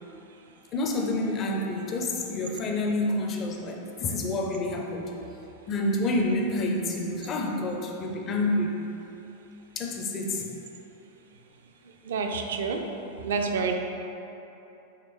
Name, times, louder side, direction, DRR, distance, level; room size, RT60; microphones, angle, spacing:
voice 1, 0.7-5.1 5.7-8.8 9.8-10.5, left 2 dB, 30° left, 1 dB, 0.5 m, -28 dB
voice 2, 12.1-12.8 13.2-13.8, right 4 dB, 60° right, 4 dB, 0.4 m, -28 dB
5.0 x 3.0 x 3.0 m, 3.0 s
figure-of-eight pair, 90°, 0 cm